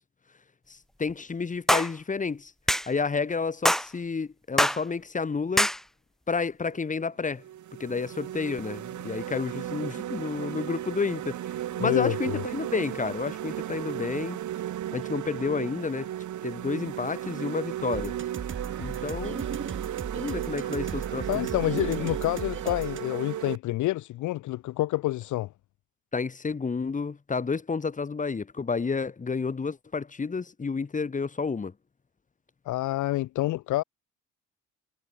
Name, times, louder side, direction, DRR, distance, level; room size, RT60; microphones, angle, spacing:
voice 1, 0.7-2.5 2.9-5.7 6.3-7.4 7.8-11.3 11.8-14.4 14.9-16.1 16.4-18.2 18.8-19.5 20.2-21.4 22.6-22.7 26.1-31.7, left 4 dB, 25° left, 1.3 m, -30 dB
sound 1, 1.7-1.9 2.7-2.9 3.6-3.9 4.6-4.8 5.6-5.8, equal, ahead, 1.8 m, -22 dB
sound 2, 6.6-6.8 7.4-23.6, right 12 dB, 75° right, 5.2 m, -35 dB
voice 2, 11.8-12.4 21.3-25.5 32.7-33.8, left 16 dB, 75° left, 0.7 m, -28 dB
sound 3, 17.9-23.0, right 6 dB, 40° right, 5.0 m, -37 dB
cardioid pair, 90°, 30 cm